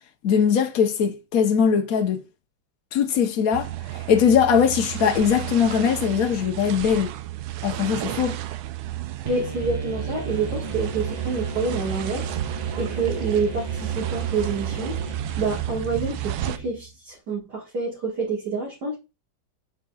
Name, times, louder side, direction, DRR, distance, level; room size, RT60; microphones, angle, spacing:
voice 1, 0.2-2.2 2.9-3.7 4.1-7.1 7.6-8.4, left 7 dB, 55° left, 1.2 m, -21 dB
sound 1, 3.5-16.6, right 14 dB, 90° right, 1.4 m, -32 dB
voice 2, 9.2-12.2 12.8-15.0 15.4-19.0, right 4 dB, 55° right, 2.4 m, -27 dB
sound 2, 9.3-16.9, right 4 dB, 35° right, 0.7 m, -34 dB
9.7 x 4.0 x 2.4 m
omnidirectional pair, 2.1 m